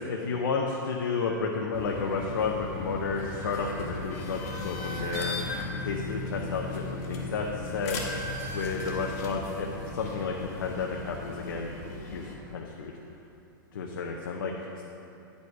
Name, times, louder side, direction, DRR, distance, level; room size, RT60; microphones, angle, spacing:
voice 1, 0.0-5.4 5.8-8.0 8.5-11.7 12.1-12.9 13.7-14.8, left 4 dB, 90° left, 0 dB, 0.8 m, -32 dB
sound 1, 1.7-12.3, left 2 dB, 45° left, 1.3 m, -37 dB
9.6 x 5.3 x 4.7 m, 2.8 s
hypercardioid pair, 160°, 11 cm